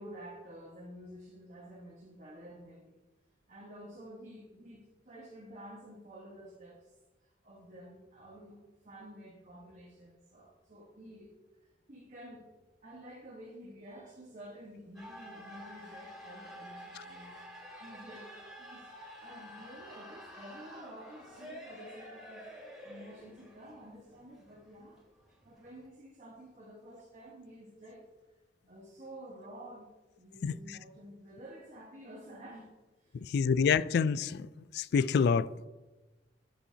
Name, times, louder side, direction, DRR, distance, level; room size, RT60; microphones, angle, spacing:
voice 1, 0.0-3.0 3.5-8.6 8.8-11.4 11.6-12.5 12.8-22.4 22.8-25.0 25.4-28.1 28.7-29.9 30.2-32.7 33.0-33.5, equal, 40° right, 1.3 m, -51 dB
sound 1, 14.9-25.9, equal, ahead, 2.8 m, -49 dB
voice 2, 33.2-34.5 34.7-35.7, left 6 dB, 60° left, 0.3 m, -27 dB
12.5 x 7.1 x 2.8 m
head